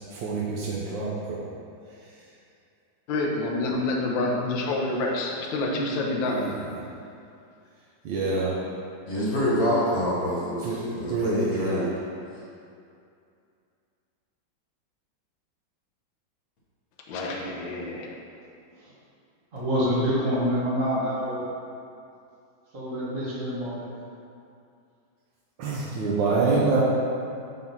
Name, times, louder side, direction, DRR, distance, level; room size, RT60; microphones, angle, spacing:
voice 1, 0.0-1.4 6.4-6.5 8.0-8.5 10.6-10.8 11.1-11.8 25.6-26.8, right 3 dB, 70° right, -6 dB, 1.5 m, -26 dB
voice 2, 3.1-6.5 17.1-18.1, left 2 dB, 75° left, -1 dB, 1.5 m, -27 dB
voice 3, 9.0-11.9, equal, 50° left, -7 dB, 1.6 m, -26 dB
voice 4, 19.5-21.4 22.7-23.8, equal, 40° right, -9 dB, 2.0 m, -26 dB
6.1 x 3.7 x 5.5 m, 2.5 s
omnidirectional pair, 2.2 m